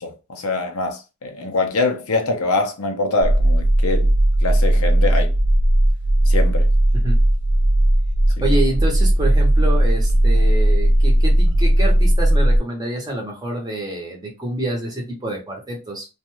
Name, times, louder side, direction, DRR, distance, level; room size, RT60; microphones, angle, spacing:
voice 1, 0.0-4.1 4.4-5.3 6.3-6.7, left 3 dB, 90° left, 0.7 m, -23 dB
sound 1, 3.2-12.6, right 1 dB, 55° right, 0.6 m, -16 dB
voice 2, 8.4-16.1, right 1 dB, 20° right, 0.9 m, -27 dB
2.5 x 2.3 x 3.1 m
head